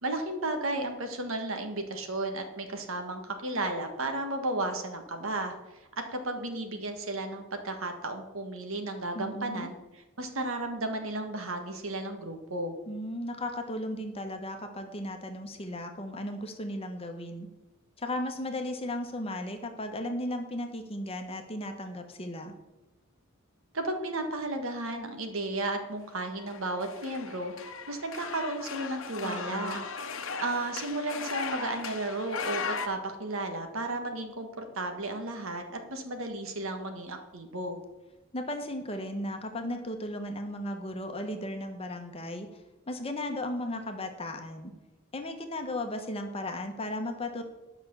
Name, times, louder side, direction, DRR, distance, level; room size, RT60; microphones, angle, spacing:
voice 1, 0.0-9.7 10.2-12.8 23.7-37.8, right 2 dB, 70° right, 6 dB, 1.5 m, -34 dB
voice 2, 9.1-9.7 12.9-17.5 18.0-22.5 29.2-29.8 38.3-42.5 42.9-44.7 45.1-47.4, left 1 dB, 25° left, 5 dB, 1.1 m, -35 dB
sound 1, 26.4-32.9, left 5 dB, 65° left, 1.0 m, -37 dB
10.5 x 6.0 x 6.9 m, 1.0 s
head